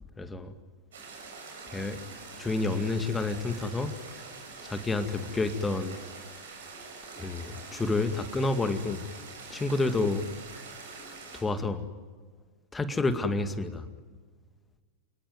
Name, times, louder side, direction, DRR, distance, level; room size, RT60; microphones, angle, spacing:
voice 1, 0.2-0.5 1.7-2.0 2.4-3.9 4.6-6.0 7.2-9.0 9.5-10.2 11.3-11.8 12.7-13.8, left 3 dB, 15° left, 9 dB, 2.1 m, -29 dB
sound 1, 0.9-11.4, right 4 dB, 60° right, 7.7 m, -45 dB
29.0 x 19.0 x 9.5 m, 1.5 s
figure-of-eight pair, 90°, 0 cm